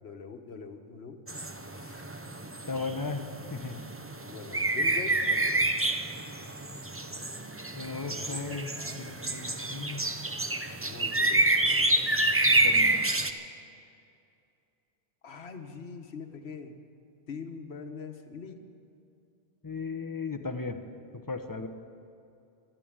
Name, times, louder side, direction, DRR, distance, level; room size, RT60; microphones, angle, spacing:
voice 1, 0.0-1.2 1.7-2.2 4.3-5.7 8.1-8.4 8.7-9.2 10.8-12.1 15.2-16.7 17.3-18.6, left 5 dB, 75° left, 6 dB, 1.4 m, -43 dB
sound 1, 1.3-13.3, right 2 dB, 15° right, 0.5 m, -28 dB
voice 2, 2.7-3.2 3.5-3.8 7.8-8.7 9.0-10.0 12.4-13.1 19.6-20.8 21.1-21.7, left 4 dB, 20° left, 6 dB, 0.9 m, -36 dB
12.5 x 12.5 x 8.8 m, 2.5 s
omnidirectional pair, 1.1 m